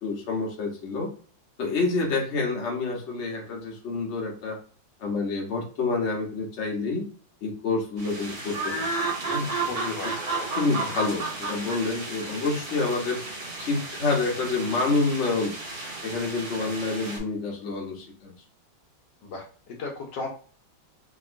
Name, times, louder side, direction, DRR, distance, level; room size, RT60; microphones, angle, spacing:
voice 1, 0.0-1.1 1.6-4.6 5.0-7.1 7.4-8.9 9.2-10.0 10.6-13.2 13.5-15.6 16.0-18.3, left 3 dB, 50° left, -1 dB, 0.9 m, -28 dB
sound 1, 8.0-17.2, right 3 dB, 55° right, 1.3 m, -33 dB
voice 2, 9.6-10.1 10.3-10.5 16.5-16.8 19.2-20.3, left 3 dB, 70° left, 1 dB, 1.2 m, -36 dB
2.9 x 2.9 x 2.5 m, 0.43 s
omnidirectional pair, 2.1 m